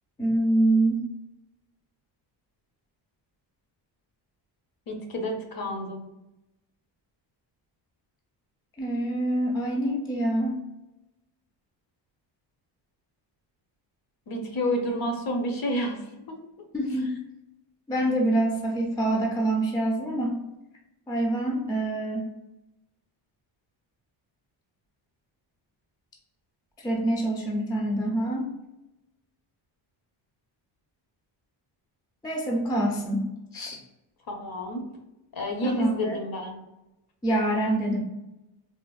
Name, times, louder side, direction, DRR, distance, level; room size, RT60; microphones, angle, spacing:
voice 1, 0.2-1.0 8.8-10.6 16.7-17.1 17.9-20.4 21.1-22.3 26.8-28.5 32.2-33.8 35.6-36.2 37.2-38.0, right 1 dB, 10° left, -1 dB, 0.3 m, -26 dB
voice 2, 4.9-6.0 14.3-16.0 16.3-16.4 34.3-34.8 35.3-36.6, left 1 dB, 45° left, 3 dB, 0.7 m, -29 dB
3.4 x 2.0 x 2.3 m, 0.94 s
cardioid pair, 115°, 49 cm